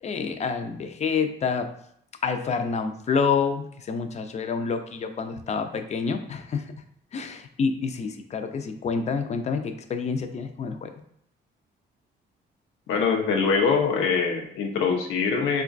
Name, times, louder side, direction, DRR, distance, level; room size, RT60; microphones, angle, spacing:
voice 1, 0.0-1.7 2.2-6.7 7.1-10.9, left 5 dB, 35° left, 7 dB, 0.4 m, -28 dB
voice 2, 12.9-15.6, left 5 dB, 90° left, 3 dB, 0.6 m, -23 dB
3.7 x 2.2 x 2.5 m, 0.70 s
cardioid pair, 90°, 20 cm